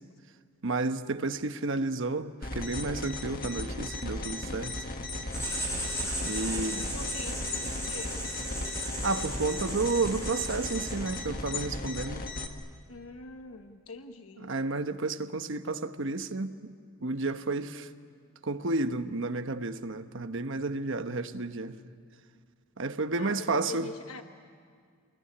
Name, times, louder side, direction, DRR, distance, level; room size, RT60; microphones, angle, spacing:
voice 1, 0.6-4.8 6.2-6.9 9.0-12.3 14.4-16.7 17.0-17.9 18.4-21.8 22.8-23.9, right 3 dB, 65° right, 1.1 m, -31 dB
sound 1, 2.4-12.5, left 2 dB, 45° left, 1.7 m, -36 dB
Writing, 5.3-11.3, right 1 dB, 15° left, 7.5 m, -37 dB
voice 2, 6.9-8.2 12.9-14.5 23.2-24.2, left 3 dB, 90° left, 1.2 m, -44 dB
27.5 x 21.5 x 9.9 m
head